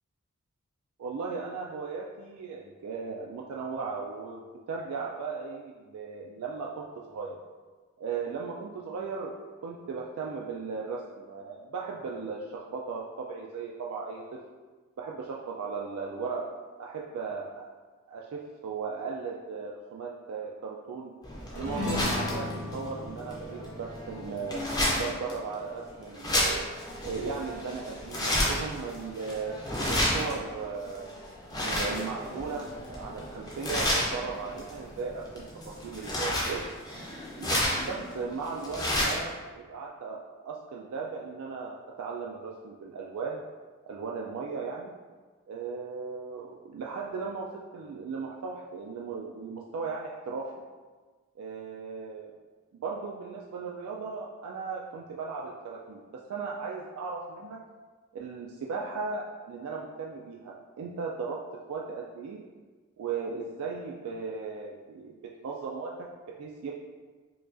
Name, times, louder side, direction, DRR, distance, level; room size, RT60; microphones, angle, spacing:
voice 1, 1.0-7.4 8.0-9.3 9.6-14.4 15.0-16.5 16.8-17.7 18.1-21.1 21.6-24.6 25.0-26.6 27.0-29.6 29.9-31.1 31.6-32.6 32.9-36.7 37.4-43.4 43.8-44.9 45.5-50.5 51.4-52.3 52.7-57.6 58.1-62.4 63.0-65.2 65.4-65.9 66.3-66.8, right 5 dB, 80° right, -2 dB, 0.3 m, -37 dB
sound 1, 21.2-39.3, left 1 dB, 15° left, 0.5 m, -32 dB
sound 2, 21.5-26.2, left 2 dB, 35° left, 0.9 m, -37 dB
4.9 x 2.3 x 2.5 m, 1.4 s
head